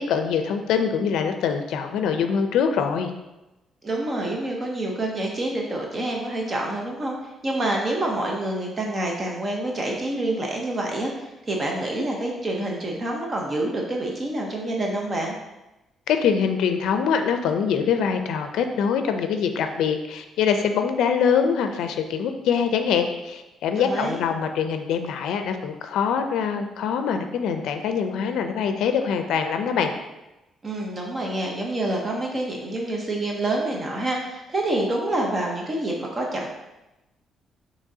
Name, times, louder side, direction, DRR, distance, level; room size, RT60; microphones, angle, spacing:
voice 1, 0.0-3.1 16.1-29.9, left 7 dB, 80° left, 7 dB, 0.4 m, -24 dB
voice 2, 3.8-7.1 7.4-15.4 23.7-24.2 30.6-36.5, right 1 dB, 30° right, 0 dB, 0.7 m, -27 dB
6.1 x 3.1 x 2.7 m, 0.99 s
cardioid pair, 125°, 0 cm